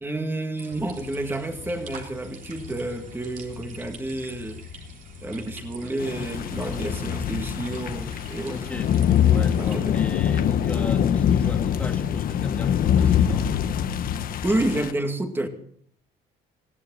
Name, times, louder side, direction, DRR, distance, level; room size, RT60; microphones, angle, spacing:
voice 1, 0.0-4.6 5.2-8.6 9.6-10.1 14.4-15.5, right 2 dB, 15° right, 2.2 m, -29 dB
sound 1, 0.6-9.8, right 5 dB, 50° right, 3.7 m, -47 dB
sound 2, 0.7-14.7, left 6 dB, 75° left, 2.6 m, -43 dB
sound 3, 6.0-14.9, left 9 dB, 60° left, 1.0 m, -23 dB
voice 2, 8.5-9.0 9.3-13.5, left 1 dB, 10° left, 2.8 m, -37 dB
20.5 x 15.0 x 4.1 m
cardioid pair, 110°, 17 cm